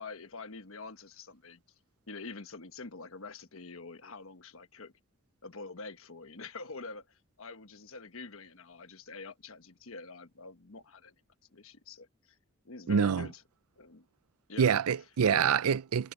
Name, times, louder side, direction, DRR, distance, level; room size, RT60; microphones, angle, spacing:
voice 1, 0.0-1.6 2.1-4.9 5.4-11.1 11.5-12.4 12.6-13.4 13.8-14.1 14.5-14.7 15.3-15.6, left 3 dB, 70° left, 1.3 m, -46 dB
voice 2, 12.9-13.3 14.6-16.1, right 7 dB, 85° right, 0.5 m, -26 dB
head